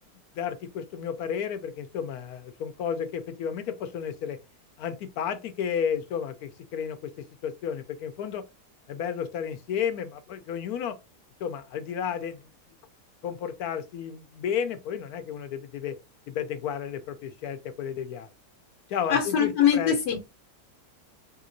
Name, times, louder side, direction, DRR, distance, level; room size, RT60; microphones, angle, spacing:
voice 1, 0.4-4.4 4.8-7.1 7.4-8.4 8.9-11.0 11.4-12.5 13.2-16.0 16.3-18.3 18.9-20.0, left 8 dB, 70° left, 1.0 m, -32 dB
voice 2, 19.1-20.4, left 8 dB, 90° left, 1.4 m, -23 dB
3.7 x 2.8 x 2.5 m
omnidirectional pair, 1.8 m